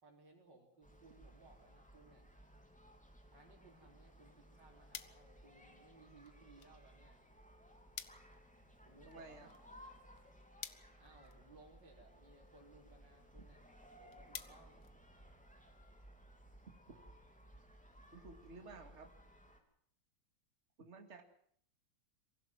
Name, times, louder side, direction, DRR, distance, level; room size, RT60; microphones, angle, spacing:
voice 1, 0.0-2.3 3.3-7.2 8.9-9.6 11.0-13.7 14.0-14.9, right 2 dB, 70° right, -6 dB, 5.2 m, -63 dB
sound 1, 0.8-19.6, equal, 5° left, 3.2 m, -60 dB
sound 2, 4.9-15.7, left 9 dB, 75° left, 1.7 m, -56 dB
voice 2, 9.1-9.5 16.9-17.0 18.1-19.1 20.8-21.2, right 3 dB, 40° right, 5 dB, 2.5 m, -54 dB
24.5 x 15.5 x 7.6 m, 0.65 s
omnidirectional pair, 2.0 m